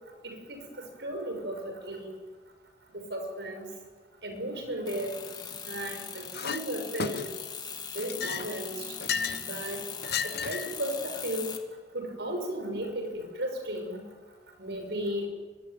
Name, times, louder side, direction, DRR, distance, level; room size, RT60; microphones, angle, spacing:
voice 1, 0.0-2.2 2.9-3.8 4.2-5.2 5.6-7.3 7.9-9.0 9.4-9.9 10.2-11.6 11.9-14.1 14.6-15.3, right 1 dB, 75° right, 5 dB, 6.7 m, -35 dB
sound 1, 4.9-11.6, left 6 dB, 25° left, 2.2 m, -40 dB
Chink clink, 6.3-6.6 7.0-7.5 8.0-9.5 10.0-10.8, left 6 dB, 60° left, 1.0 m, -33 dB
24.5 x 23.5 x 9.5 m, 1.4 s
head